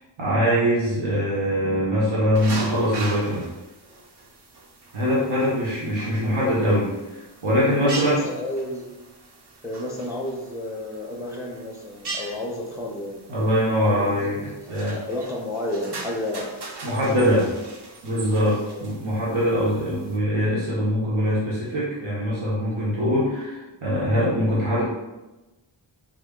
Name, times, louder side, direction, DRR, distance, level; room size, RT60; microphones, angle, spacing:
voice 1, 0.2-3.4 4.9-6.9 7.1-8.2 13.3-14.4 14.7-14.9 16.8-17.4 18.0-24.8, equal, 85° right, -7 dB, 0.9 m, -22 dB
sound 1, 2.3-20.2, right 2 dB, 55° right, 0.7 m, -40 dB
voice 2, 7.4-8.9 9.6-13.1 13.8-16.5 17.0-17.4 18.6-18.8, left 1 dB, 5° right, -1 dB, 0.5 m, -31 dB
3.7 x 2.1 x 3.6 m, 1.1 s
wide cardioid pair, 80°, 48 cm